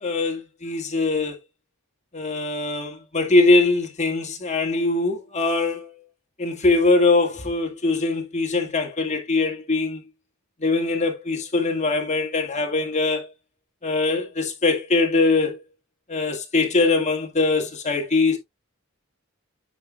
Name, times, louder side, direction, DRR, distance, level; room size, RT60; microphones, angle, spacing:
voice 1, 0.0-1.4 2.1-5.9 6.4-10.0 10.6-13.3 13.8-15.6 16.1-18.4, left 3 dB, 35° left, 1.8 m, -22 dB
9.0 x 5.7 x 2.3 m
head